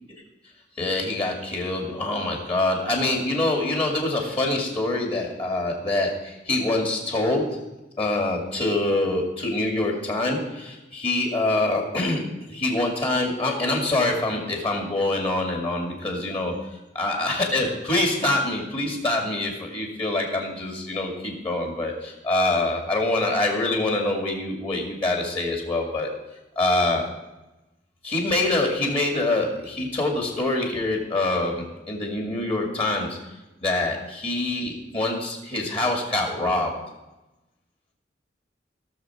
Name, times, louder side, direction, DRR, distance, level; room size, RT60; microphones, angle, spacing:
voice 1, 0.8-7.6 8.0-16.5 17.0-26.1 26.6-27.1 28.0-33.2 33.6-36.8, left 2 dB, 30° left, 0 dB, 2.3 m, -25 dB
17.5 x 6.8 x 4.6 m, 1.0 s
head